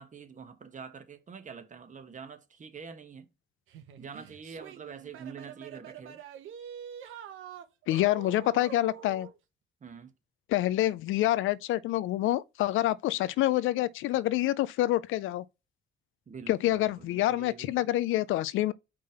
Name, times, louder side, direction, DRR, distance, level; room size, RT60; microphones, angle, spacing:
voice 1, 0.0-3.3 4.0-6.2 9.8-10.1 16.3-17.9, right 6 dB, 40° right, 1.4 m, -46 dB
sound 1, 3.7-9.4, right 8 dB, 85° right, 1.2 m, -46 dB
voice 2, 7.9-9.3 10.5-15.4 16.5-18.7, left 15 dB, 85° left, 0.5 m, -27 dB
5.2 x 3.5 x 5.5 m
cardioid pair, 90°, 20 cm